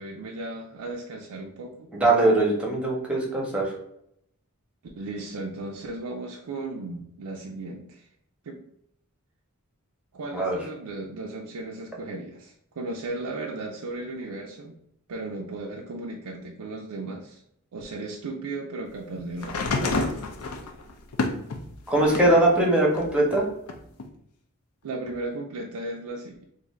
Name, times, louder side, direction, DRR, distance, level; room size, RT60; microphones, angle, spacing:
voice 1, 0.0-1.9 5.0-8.1 8.4-8.6 10.1-14.8 15.1-17.4 17.7-20.1 24.8-26.4, right 2 dB, 80° right, -1 dB, 0.4 m, -35 dB
voice 2, 1.9-3.7 10.3-10.6 21.9-23.4, right 2 dB, 5° right, -2 dB, 0.8 m, -21 dB
sound 1, 19.4-22.4 22.9-24.1 25.1-25.2, left 3 dB, 75° left, 0.5 m, -30 dB
2.6 x 2.4 x 4.2 m, 0.73 s
head